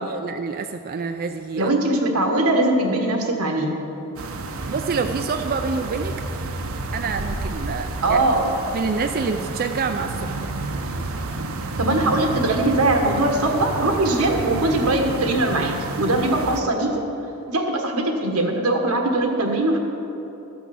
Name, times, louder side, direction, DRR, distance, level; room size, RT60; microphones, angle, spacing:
voice 1, 0.0-1.7 4.7-6.2 6.9-8.2 8.7-10.4, right 5 dB, 45° right, 6 dB, 0.4 m, -27 dB
voice 2, 1.6-3.7 8.0-8.5 11.8-16.9 17.5-19.8, right 2 dB, 85° right, 3 dB, 1.4 m, -21 dB
sound 1, 4.2-16.6, right 2 dB, 70° right, 0.8 m, -30 dB
13.5 x 6.1 x 7.0 m, 2.9 s
head